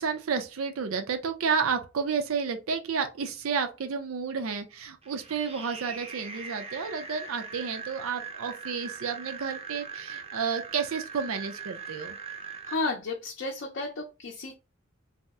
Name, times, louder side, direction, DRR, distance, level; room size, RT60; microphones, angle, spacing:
voice 1, 0.0-12.2, right 6 dB, 80° right, 0.5 m, -31 dB
sound 1, 5.0-12.7, right 5 dB, 30° right, 0.5 m, -41 dB
voice 2, 12.6-14.6, left 3 dB, 55° left, 0.5 m, -32 dB
2.7 x 2.0 x 3.4 m
head